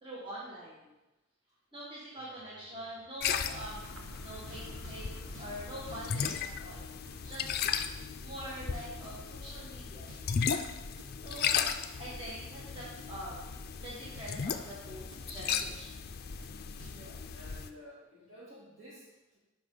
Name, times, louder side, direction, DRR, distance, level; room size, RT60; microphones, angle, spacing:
voice 1, 0.0-0.8 1.7-6.8 7.2-7.5 8.2-10.1 11.2-13.5 13.8-15.9, right 1 dB, 25° right, -8 dB, 1.7 m, -44 dB
sound 1, 2.2-3.9 4.4-7.5 7.8-9.1 9.4-10.2 10.5-14.5 14.8-17.6, equal, 70° right, 1.6 m, -52 dB
sound 2, 3.2-17.7, left 7 dB, 45° left, 0.4 m, -36 dB
sound 3, 3.6-9.3, equal, 90° right, 1.1 m, -52 dB
voice 2, 16.9-19.4, equal, 55° right, -6 dB, 3.0 m, -53 dB
10.0 x 5.2 x 3.9 m, 0.98 s
head